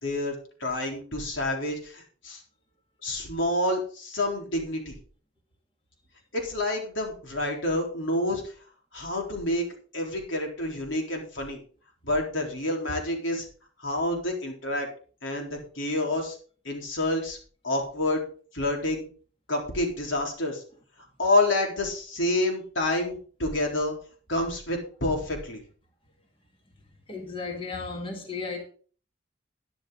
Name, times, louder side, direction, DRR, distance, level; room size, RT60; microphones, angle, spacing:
voice 1, 0.0-2.4 3.0-5.0 6.3-8.5 8.9-9.7 9.9-11.6 12.0-13.4 13.8-14.9 15.2-16.4 16.6-17.4 17.6-18.2 18.5-19.0 19.5-20.6 21.2-23.9 24.3-25.6, left 1 dB, 85° left, 3.9 m, -28 dB
voice 2, 27.1-28.6, left 4 dB, 25° left, 1.8 m, -34 dB
12.5 x 10.5 x 3.9 m
head